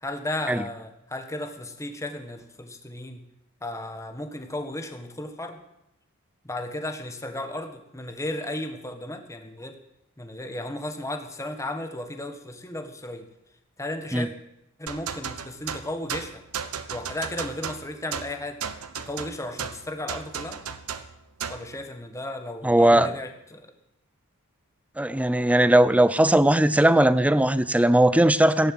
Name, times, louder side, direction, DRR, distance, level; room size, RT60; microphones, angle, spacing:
voice 1, 0.0-3.2 3.6-5.6 6.4-9.8 10.2-13.3 13.8-14.3 14.8-16.4 16.9-18.6 19.1-20.6 21.5-23.7, left 1 dB, 15° left, 6 dB, 1.6 m, -34 dB
sound 1, 14.9-21.7, right 7 dB, 75° right, 1.1 m, -35 dB
voice 2, 22.6-23.1 25.0-28.7, right 1 dB, 5° right, 15 dB, 0.6 m, -19 dB
15.5 x 11.0 x 7.9 m, 0.83 s
head